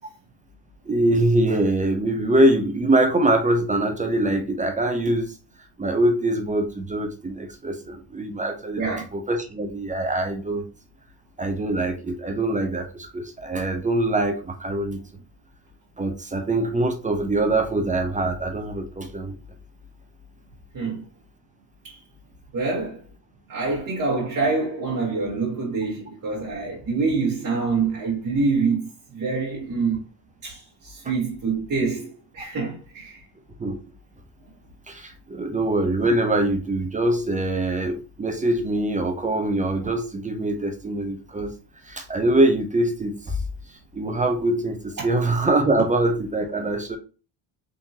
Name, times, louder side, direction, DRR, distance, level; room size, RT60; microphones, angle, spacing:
voice 1, 0.9-5.3 5.8-10.7 11.4-15.0 16.0-19.3 33.6-33.8 34.9-41.5 41.8-43.4 43.9-47.0, right 1 dB, 15° right, 0.5 m, -23 dB
voice 2, 22.5-23.0 23.5-30.0 30.4-33.2, right 4 dB, 35° right, 1.3 m, -26 dB
3.8 x 2.8 x 2.8 m
cardioid pair, 105°, 48 cm